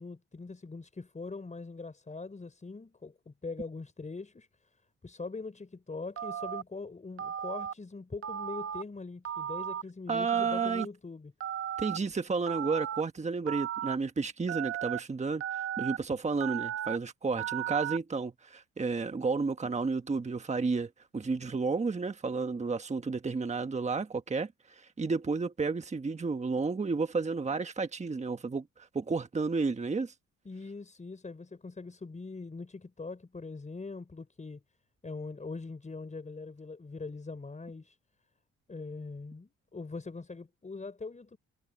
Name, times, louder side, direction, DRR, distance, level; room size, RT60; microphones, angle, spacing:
voice 1, 0.0-4.5 5.0-11.3 30.4-34.6 35.0-38.0 38.7-41.4, left 3 dB, 25° left, 5.0 m, -42 dB
Telephone, 6.2-6.6 7.2-7.7 8.2-8.8 9.2-9.8 10.3-10.8 11.4-12.0 12.5-13.0 13.5-14.0 14.5-15.0 15.4-16.0 16.4-17.0 17.4-18.0, right 10 dB, 45° right, 0.8 m, -35 dB
voice 2, 10.1-10.9 11.8-30.1, right 4 dB, 25° right, 1.3 m, -32 dB
cardioid pair, 90°, 30 cm